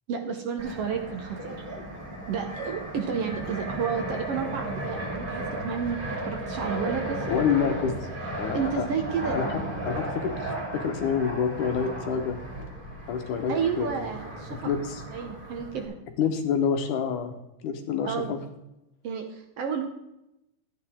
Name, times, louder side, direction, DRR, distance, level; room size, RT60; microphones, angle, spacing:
voice 1, 0.1-1.6 2.3-7.3 8.5-9.4 13.5-14.6 15.1-15.9 18.1-18.3 19.0-19.9, right 6 dB, 65° right, 4 dB, 1.7 m, -31 dB
Fixed-wing aircraft airplane, 0.6-15.9, right 1 dB, 15° right, 2.2 m, -35 dB
voice 2, 7.3-7.9 8.4-8.9 9.3-9.6 9.9-12.4 13.1-13.9 14.6-15.0 16.2-17.3 17.6-18.4, left 7 dB, 80° left, 5 dB, 2.7 m, -27 dB
13.0 x 9.5 x 3.6 m, 0.89 s
omnidirectional pair, 3.5 m